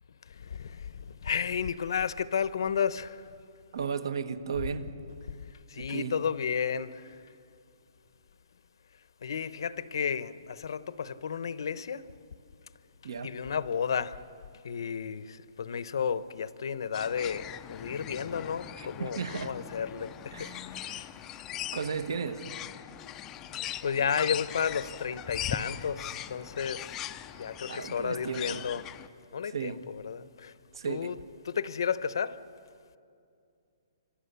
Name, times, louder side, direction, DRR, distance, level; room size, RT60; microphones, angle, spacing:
voice 1, 0.4-3.2 5.7-7.1 9.2-12.0 13.2-14.2 14.6-21.0 23.8-27.0 27.4-28.9 29.3-30.5 30.9-31.2 31.4-32.4, left 7 dB, 65° left, 0.9 m, -32 dB
voice 2, 3.7-4.9 5.8-6.2 13.0-13.3 18.8-19.5 20.3-20.6 21.7-22.5 27.7-28.7 29.4-29.8 30.7-31.2, right 6 dB, 70° right, 1.6 m, -35 dB
sound 1, 16.9-29.1, left 11 dB, 15° left, 0.5 m, -40 dB
26.5 x 25.0 x 7.0 m
hypercardioid pair, 175°, 3 cm